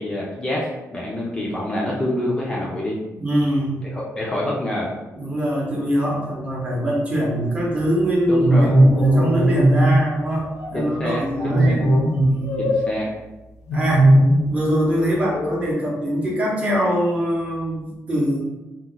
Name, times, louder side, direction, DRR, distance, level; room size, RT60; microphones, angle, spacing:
voice 1, 0.0-3.0 3.8-4.9 8.3-8.8 10.7-11.9 12.6-13.1, left 1 dB, 15° left, -4 dB, 0.4 m, -26 dB
voice 2, 3.2-3.8 5.1-12.6 13.7-14.1 14.4-18.4, equal, 20° right, -3 dB, 0.7 m, -23 dB
sound 1, 8.4-10.0 10.5-10.7 11.5-13.0 13.7-14.5 14.8-15.7, right 1 dB, 80° left, 0.6 m, -17 dB
2.3 x 2.1 x 3.8 m, 1.1 s
cardioid pair, 160°, 6 cm